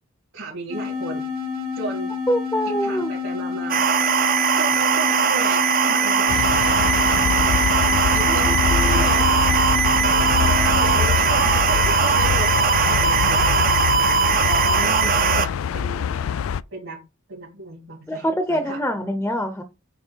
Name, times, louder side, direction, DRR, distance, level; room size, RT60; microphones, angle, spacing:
voice 1, 0.3-1.2 1.8-2.1 2.6-3.8 4.5-7.2 8.1-8.5 8.8-9.3 10.4-13.5 14.4-16.2 16.7-17.0 17.3-18.8, right 2 dB, 60° right, -5 dB, 2.8 m, -34 dB
sound 1, 0.7-11.1, left 5 dB, 75° right, 1.9 m, -29 dB
voice 2, 2.3-3.1 8.3-9.1 18.1-19.6, equal, 10° left, 8 dB, 0.7 m, -25 dB
sound 2, 3.7-15.5, right 6 dB, 45° right, 0.6 m, -20 dB
sound 3, 6.3-16.6, left 7 dB, 75° left, 0.3 m, -24 dB
8.9 x 3.2 x 4.5 m, 0.28 s
head